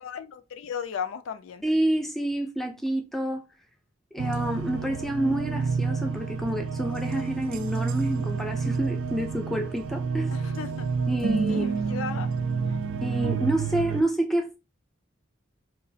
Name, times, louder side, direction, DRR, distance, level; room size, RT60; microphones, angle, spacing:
voice 1, 0.0-1.6 10.3-10.9 11.5-12.3 12.6-12.8, left 6 dB, 85° left, 0.4 m, -35 dB
voice 2, 1.6-3.4 4.1-10.3 11.1-11.7 13.0-14.6, right 1 dB, ahead, 0.4 m, -28 dB
sound 1, 4.2-14.0, right 5 dB, 70° right, 0.3 m, -29 dB
2.9 x 2.3 x 2.7 m
head